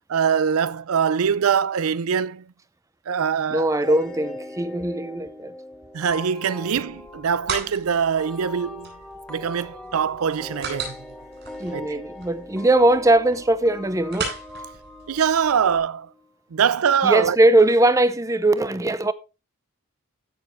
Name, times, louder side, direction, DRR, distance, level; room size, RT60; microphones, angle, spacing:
voice 1, 0.1-2.4 3.1-3.7 5.9-8.9 9.3-11.0 11.7-12.0 15.1-16.1 16.5-17.4, right 7 dB, 75° right, 0.5 m, -23 dB
voice 2, 3.5-5.5 11.6-14.3 17.0-19.1, right 1 dB, 15° right, 0.6 m, -20 dB
sound 1, 3.8-16.2, left 1 dB, 5° left, 1.6 m, -40 dB
sound 2, 6.9-15.8, right 4 dB, 50° right, 7.6 m, -38 dB
16.0 x 7.0 x 3.1 m
head